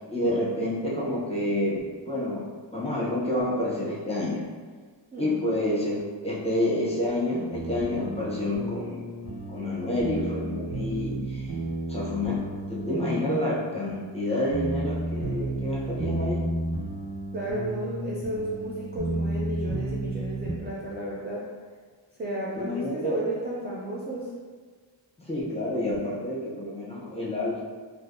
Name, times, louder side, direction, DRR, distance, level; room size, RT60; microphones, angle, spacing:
voice 1, 0.1-4.4 5.2-9.1 9.5-11.5 11.9-12.4 12.7-16.5 22.5-23.2 25.2-27.6, left 1 dB, 15° left, -6 dB, 0.7 m, -28 dB
voice 2, 5.1-5.4 17.3-21.5 22.2-24.3, right 1 dB, 25° right, -5 dB, 0.3 m, -33 dB
sound 1, 7.5-20.5, right 2 dB, 75° right, 0.8 m, -32 dB
3.3 x 2.5 x 2.5 m, 1.5 s
wide cardioid pair, 120°, 46 cm